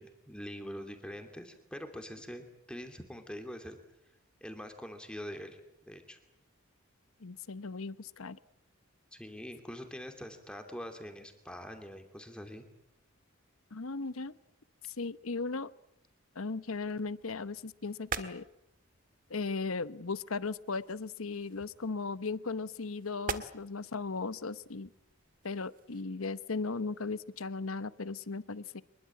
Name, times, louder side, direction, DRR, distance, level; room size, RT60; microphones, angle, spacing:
voice 1, 0.0-3.8 4.4-5.6 5.9-6.2 9.1-12.6, equal, 5° left, 5 dB, 2.7 m, -44 dB
voice 2, 7.2-8.4 13.7-14.3 14.9-15.7 16.3-18.4 19.3-24.9 25.4-28.8, left 4 dB, 75° left, 15 dB, 0.9 m, -37 dB
sound 1, 16.6-26.0, right 5 dB, 40° right, 1.7 m, -46 dB
24.5 x 22.0 x 8.5 m, 0.82 s
head